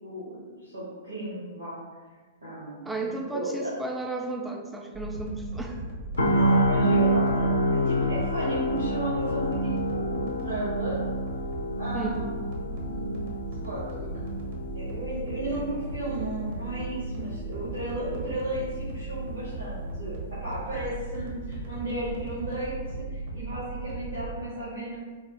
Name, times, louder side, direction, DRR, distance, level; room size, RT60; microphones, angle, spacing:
voice 1, 0.0-1.7 2.4-3.7 6.3-11.0 11.8-13.3 13.6-13.9 14.7-25.0, right 1 dB, 90° right, -10 dB, 1.0 m, -34 dB
voice 2, 2.9-5.9 11.9-12.3, right 2 dB, 5° right, 2 dB, 0.3 m, -34 dB
sound 1, 4.9-24.4, right 2 dB, 55° right, 0.6 m, -37 dB
sound 2, 6.2-20.2 20.5-20.7, equal, 80° left, 0.3 m, -29 dB
3.2 x 2.0 x 3.0 m, 1.4 s
figure-of-eight pair, 110°, 0 cm